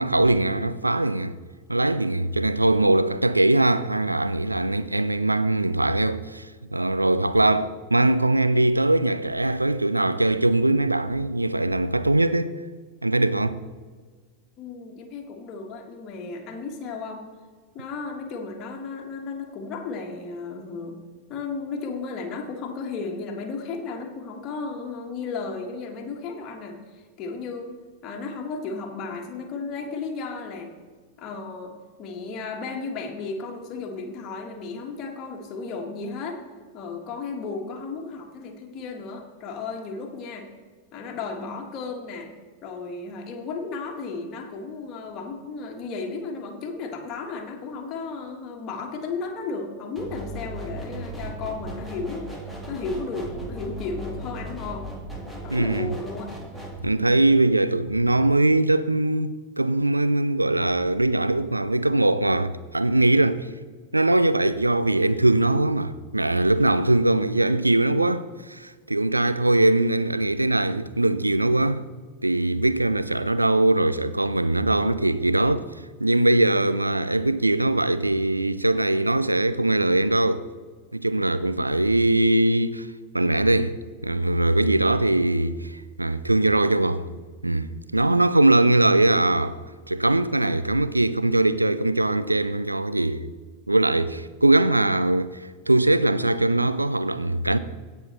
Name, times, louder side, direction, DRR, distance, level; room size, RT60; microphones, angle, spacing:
voice 1, 0.0-1.4 1.7-6.5 6.7-12.5 13.0-13.6 55.5-55.9 56.8-63.5 63.9-71.8 72.2-75.7 76.0-80.5 80.9-82.9 83.1-83.8 84.0-87.1 87.4-89.6 89.9-93.3 93.7-97.6, right 2 dB, 85° right, 0.4 m, -21 dB
voice 2, 14.6-17.2 17.7-21.0 21.3-27.7 28.0-30.7 31.2-36.4 36.7-40.5 40.9-42.3 42.6-54.9 55.4-56.3 56.9-57.3, left 4 dB, 35° left, 1.6 m, -34 dB
sound 1, 50.0-56.8, right 1 dB, 5° right, 2.2 m, -36 dB
17.0 x 5.6 x 4.2 m
figure-of-eight pair, 90°, 0 cm